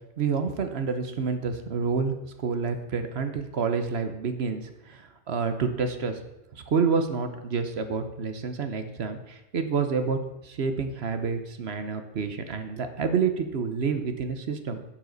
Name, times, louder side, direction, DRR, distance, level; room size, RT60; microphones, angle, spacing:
voice 1, 0.2-6.2 6.5-10.2 10.4-14.8, right 5 dB, 60° right, 8 dB, 1.1 m, -28 dB
11.5 x 7.3 x 4.0 m, 0.96 s
omnidirectional pair, 1.2 m